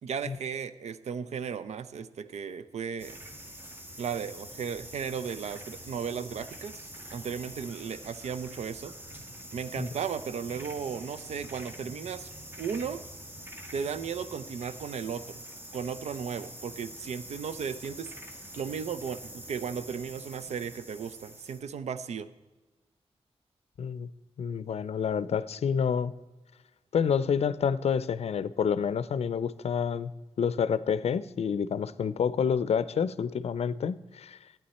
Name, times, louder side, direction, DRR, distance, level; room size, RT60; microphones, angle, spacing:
voice 1, 0.0-3.2 4.0-8.9 9.5-12.3 12.6-13.0 13.7-15.4 15.7-18.1 18.6-22.3, right 7 dB, 85° right, 13 dB, 0.6 m, -35 dB
sound 1, 3.0-21.6, equal, 20° right, 1.3 m, -45 dB
voice 2, 23.8-24.1 24.4-26.1 26.9-30.1 30.4-34.4, left 7 dB, 70° left, 17 dB, 0.5 m, -28 dB
12.5 x 9.1 x 4.2 m, 1.2 s
wide cardioid pair, 100°, 11 cm